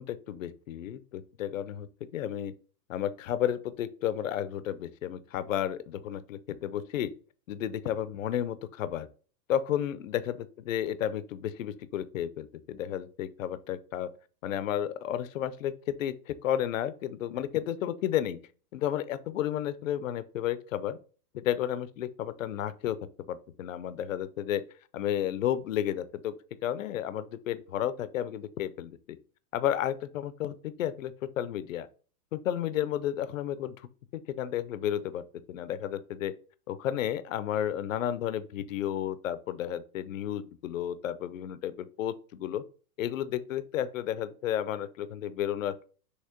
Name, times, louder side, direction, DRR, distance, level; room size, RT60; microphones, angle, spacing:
voice 1, 0.0-1.9 2.1-2.5 2.9-7.1 7.5-9.1 9.5-14.1 14.4-18.4 18.7-21.0 21.3-23.0 23.3-24.6 24.9-26.3 26.6-29.2 29.5-31.9 32.3-33.7 34.1-36.3 36.7-42.6 43.0-45.8, left 11 dB, 55° left, 14 dB, 0.6 m, -32 dB
6.5 x 2.9 x 5.7 m, 0.39 s
supercardioid pair, 175°, 48 cm